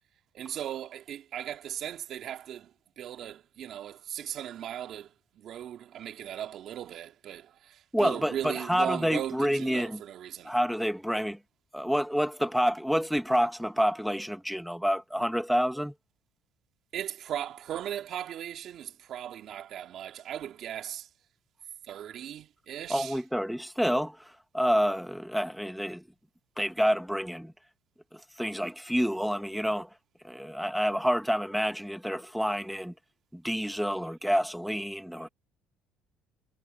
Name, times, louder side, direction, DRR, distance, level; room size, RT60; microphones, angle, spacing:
voice 1, 0.3-2.7 3.0-5.1 5.3-7.5 8.0-10.5 16.9-21.1 21.9-23.2, right 10 dB, 55° right, 2.8 m, -37 dB
voice 2, 7.9-10.0 10.4-11.4 11.7-15.9 22.9-26.0 26.6-27.5 28.4-29.9 30.2-32.9 33.3-35.3, equal, ahead, 1.5 m, -28 dB
cardioid pair, 100°, 0 cm